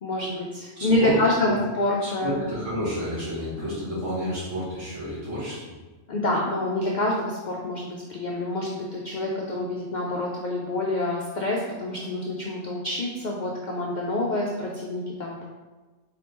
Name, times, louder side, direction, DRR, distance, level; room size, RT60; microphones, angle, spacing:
voice 1, 0.0-2.4 6.1-15.4, left 1 dB, 70° left, -2 dB, 0.4 m, -27 dB
voice 2, 0.8-1.6 2.0-5.6, equal, 75° right, -9 dB, 1.9 m, -30 dB
3.9 x 3.4 x 2.9 m, 1.3 s
omnidirectional pair, 1.3 m